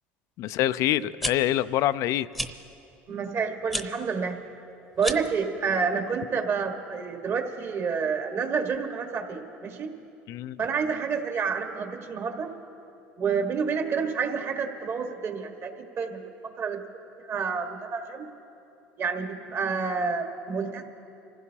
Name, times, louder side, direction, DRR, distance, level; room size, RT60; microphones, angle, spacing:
voice 1, 0.4-2.3 10.3-10.6, left 13 dB, 65° left, 15 dB, 0.4 m, -25 dB
sound 1, 1.0-1.3 2.3-2.5 3.7-3.9 4.9-5.3, equal, ahead, 0.9 m, -31 dB
voice 2, 3.1-4.4 5.0-9.9 10.6-12.5 13.2-16.8 17.2-18.3 19.0-20.8, right 5 dB, 45° right, 4 dB, 1.6 m, -29 dB
26.5 x 15.5 x 2.9 m, 2.8 s
supercardioid pair, 90°, 6 cm